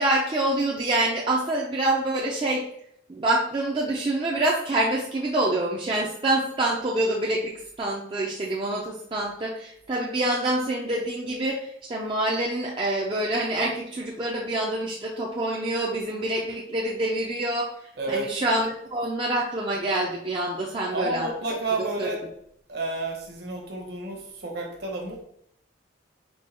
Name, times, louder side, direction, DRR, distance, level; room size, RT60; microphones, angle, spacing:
voice 1, 0.0-2.6 3.1-17.7 18.1-21.3 22.0-22.1, right 1 dB, 25° right, -2 dB, 0.4 m, -26 dB
voice 2, 18.0-18.3 20.9-22.2 22.7-25.2, right 2 dB, 50° right, 1 dB, 0.9 m, -30 dB
4.4 x 2.2 x 4.3 m, 0.71 s
head